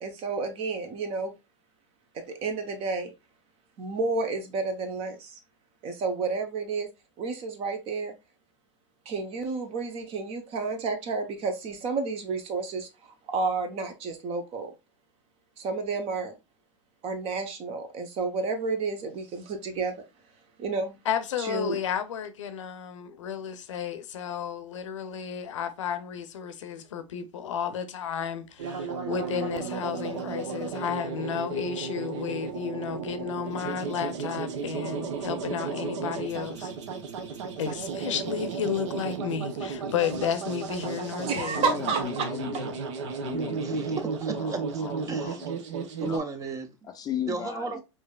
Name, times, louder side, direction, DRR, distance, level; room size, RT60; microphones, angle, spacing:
voice 1, 0.0-1.3 2.1-3.1 3.8-5.4 5.8-6.9 7.2-8.1 9.0-14.7 15.6-16.3 17.0-19.9 20.6-21.0 21.4-21.8 41.2-42.3, right 4 dB, 40° right, 0.9 m, -31 dB
voice 2, 21.1-36.7 37.6-41.6, left 8 dB, 75° left, 0.6 m, -32 dB
sound 1, 28.6-46.2, right 5 dB, 70° right, 0.8 m, -34 dB
voice 3, 41.6-42.8 43.2-44.0 44.3-45.5 46.0-46.2 46.8-47.7, left 9 dB, 25° left, 0.4 m, -36 dB
voice 4, 43.6-44.8 45.1-45.4 46.0-46.7 47.3-47.8, right 3 dB, 20° right, 0.6 m, -34 dB
4.7 x 2.7 x 2.3 m
hypercardioid pair, 105°, 16 cm